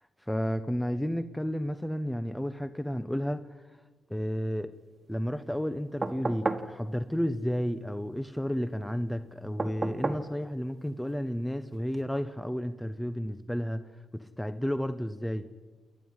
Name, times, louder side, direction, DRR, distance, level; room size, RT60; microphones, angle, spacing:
voice 1, 0.3-3.4 4.1-4.7 5.1-13.8 14.1-15.5, equal, 5° left, 11 dB, 1.0 m, -32 dB
sound 1, 6.0-6.7 9.6-10.3 11.9-12.0, right 3 dB, 30° right, 1.7 m, -31 dB
28.5 x 11.0 x 9.8 m, 1.4 s
cardioid pair, 75°, 0 cm